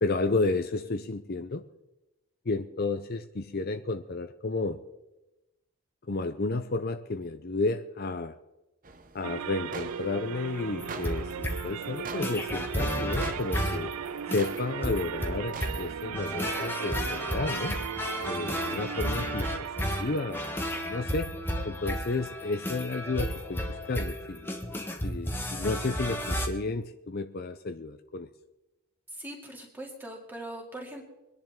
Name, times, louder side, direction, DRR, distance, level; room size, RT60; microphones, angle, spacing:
voice 1, 0.0-1.6 2.5-4.8 6.1-8.4 9.1-13.9 14.3-17.8 18.3-19.7 20.0-20.4 20.9-21.3 21.6-24.5 25.0-28.3, left 3 dB, 45° left, 9 dB, 0.6 m, -32 dB
sound 1, 8.8-16.6, right 3 dB, 35° right, 0.8 m, -45 dB
sound 2, 9.2-21.1, right 8 dB, 85° right, 0.4 m, -37 dB
sound 3, 10.8-26.5, equal, 10° left, 1.1 m, -33 dB
voice 2, 29.1-31.0, right 1 dB, 10° right, 0 dB, 2.3 m, -41 dB
24.0 x 10.5 x 3.7 m, 0.98 s
head